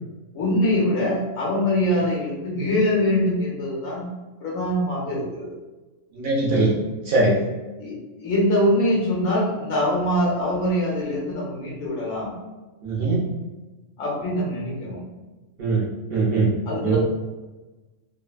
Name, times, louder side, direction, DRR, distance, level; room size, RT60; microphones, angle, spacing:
voice 1, 0.3-4.0 4.4-5.5 7.8-12.3 14.0-15.0 16.7-17.0, left 1 dB, 80° left, -5 dB, 1.3 m, -23 dB
voice 2, 6.1-6.7 7.1-7.4 12.8-13.2 15.6-15.8 16.1-16.5 16.8-17.0, right 3 dB, 55° right, -5 dB, 0.7 m, -21 dB
3.1 x 2.1 x 2.3 m, 1.2 s
omnidirectional pair, 1.4 m